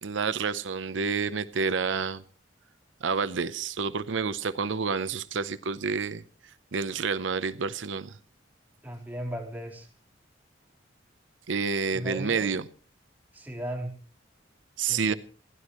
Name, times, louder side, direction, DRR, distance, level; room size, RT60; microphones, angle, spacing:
voice 1, 0.0-2.2 3.0-6.2 6.7-8.2 11.5-12.6 14.8-15.1, right 5 dB, 75° right, 14 dB, 0.7 m, -29 dB
voice 2, 8.8-9.9 11.9-12.5 13.3-14.0 14.8-15.2, right 1 dB, 10° right, 1 dB, 3.7 m, -36 dB
28.5 x 11.5 x 3.1 m, 0.39 s
head